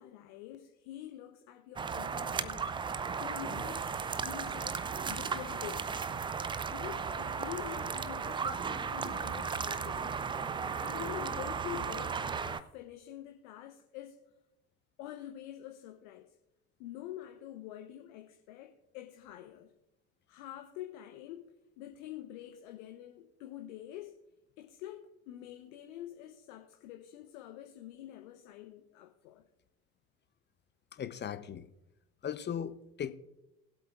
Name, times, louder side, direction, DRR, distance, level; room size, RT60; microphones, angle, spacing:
voice 1, 0.0-2.7 3.2-3.9 4.2-6.2 6.7-10.1 10.8-14.2 15.0-16.3 16.8-19.7 20.3-24.2 24.6-29.4, left 12 dB, 65° left, 1.0 m, -46 dB
sound 1, 1.8-12.6, right 6 dB, 15° right, 0.3 m, -35 dB
voice 2, 30.9-31.7 32.2-33.1, left 8 dB, 25° left, 0.7 m, -38 dB
20.5 x 8.0 x 2.5 m
hypercardioid pair, 70°, 43 cm